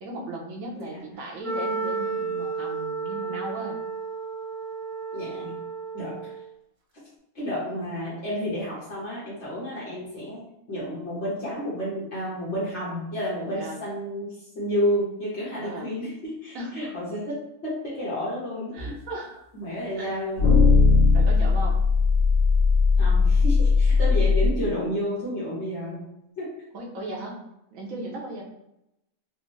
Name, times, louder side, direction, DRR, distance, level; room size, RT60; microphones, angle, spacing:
voice 1, 0.0-3.8 13.5-13.8 15.5-15.9 16.5-16.9 18.7-19.4 20.0-20.1 21.1-21.8 26.7-27.4 27.7-28.4, right 2 dB, 85° right, 0 dB, 1.2 m, -36 dB
Wind instrument woodwind instrument, 1.4-6.5, right 4 dB, 45° right, 0.4 m, -32 dB
voice 2, 5.1-5.5 5.9-6.3 7.3-10.4 10.7-17.4 17.6-18.7 19.5-20.5 23.0-26.1 26.4-26.5, equal, 60° left, -8 dB, 1.4 m, -30 dB
sound 1, 18.8-18.9 20.4-24.5, left 4 dB, 40° left, 1.3 m, -18 dB
4.2 x 2.0 x 3.1 m, 0.84 s
omnidirectional pair, 1.4 m